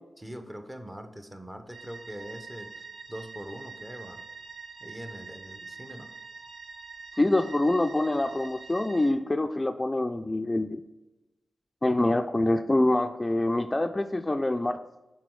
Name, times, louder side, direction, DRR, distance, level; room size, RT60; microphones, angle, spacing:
voice 1, 0.2-4.2 4.8-6.1, equal, 20° right, 7 dB, 0.9 m, -42 dB
sound 1, 1.7-9.1, right 4 dB, 55° right, 0.9 m, -45 dB
voice 2, 7.1-10.8 11.8-14.8, left 1 dB, 25° left, 8 dB, 0.3 m, -25 dB
5.9 x 3.8 x 4.8 m, 1.0 s
cardioid pair, 45°, 0 cm